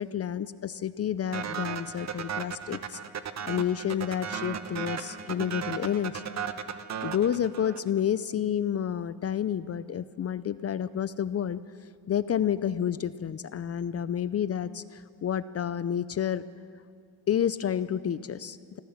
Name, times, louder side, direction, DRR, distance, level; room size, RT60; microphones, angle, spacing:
voice 1, 0.0-3.0 3.5-6.2 7.0-11.6 12.1-16.4 17.3-18.8, left 9 dB, 35° left, 15 dB, 0.5 m, -30 dB
sound 1, 1.3-8.0, right 8 dB, 40° right, 1.0 m, -36 dB
25.5 x 15.0 x 7.3 m, 2.3 s
cardioid pair, 115°, 41 cm